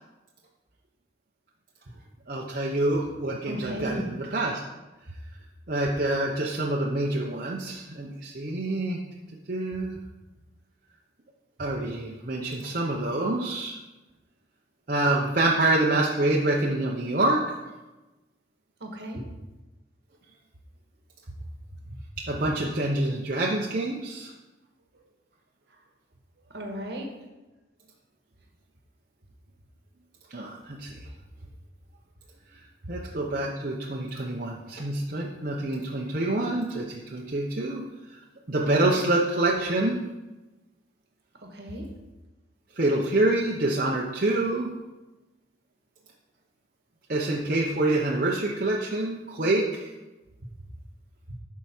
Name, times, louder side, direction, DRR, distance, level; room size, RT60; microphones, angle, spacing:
voice 1, 2.3-4.6 5.7-9.0 9.5-10.0 11.6-13.8 14.9-17.4 22.3-24.3 30.3-30.9 32.9-37.8 38.1-38.2 38.5-40.0 42.8-44.7 47.1-49.9, right 2 dB, 50° right, -3 dB, 0.8 m, -26 dB
voice 2, 3.4-4.1 18.8-19.2 26.5-27.1 41.5-41.8 51.3-51.4, right 1 dB, 70° right, 2 dB, 1.5 m, -34 dB
11.5 x 4.7 x 4.4 m, 1.1 s
head